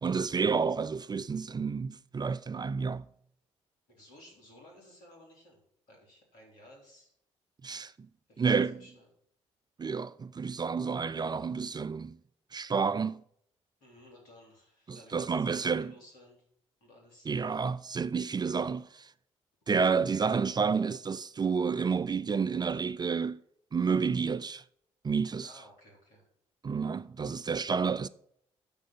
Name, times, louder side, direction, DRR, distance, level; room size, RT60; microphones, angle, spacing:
voice 1, 0.0-3.0 7.6-8.1 8.4-8.8 9.8-12.2 12.5-13.2 14.9-15.9 17.3-19.1 19.7-23.4 23.7-24.6 25.0-25.5 26.6-28.1, right 5 dB, 30° right, 0.5 m, -30 dB
voice 2, 3.9-7.1 8.3-8.5 8.8-9.1 13.8-16.4 16.8-17.3 25.4-26.2, left 1 dB, 75° left, 3.4 m, -56 dB
8.0 x 6.2 x 7.3 m
hypercardioid pair, 45°, 14 cm